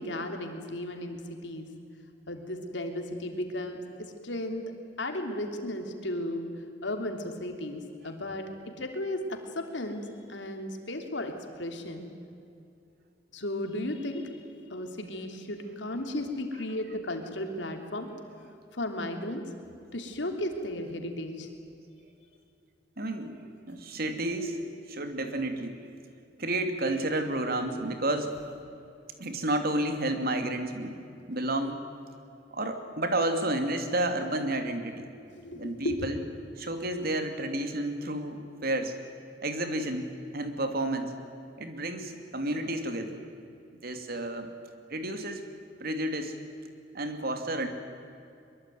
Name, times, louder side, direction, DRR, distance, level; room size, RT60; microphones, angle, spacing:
voice 1, 0.0-1.7 2.3-4.7 5.0-6.5 6.8-12.1 13.3-14.4 14.7-18.1 18.7-19.5 19.9-21.5 35.3-36.1, left 1 dB, 80° left, 4 dB, 3.3 m, -35 dB
voice 2, 23.0-23.4 23.7-25.8 26.4-28.3 29.2-31.0 31.3-31.8 32.5-35.1 35.5-36.2 36.6-38.9 39.4-40.0 40.3-41.1 41.6-43.2 43.8-44.5 44.9-45.4 45.8-46.4 46.9-47.7, right 1 dB, 55° right, 6 dB, 2.8 m, -31 dB
23.0 x 23.0 x 9.4 m, 2.5 s
head